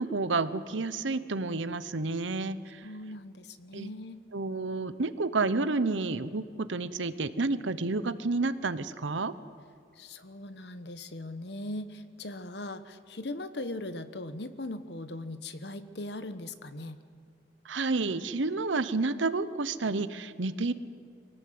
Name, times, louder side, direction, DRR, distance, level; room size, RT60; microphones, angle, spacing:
voice 1, 0.0-2.9 3.7-3.9 4.3-9.3 17.6-20.7, right 3 dB, 80° right, 14 dB, 0.9 m, -30 dB
voice 2, 2.8-4.2 10.0-17.0, left 2 dB, 60° left, 11 dB, 1.1 m, -39 dB
24.0 x 18.0 x 7.8 m, 2.3 s
head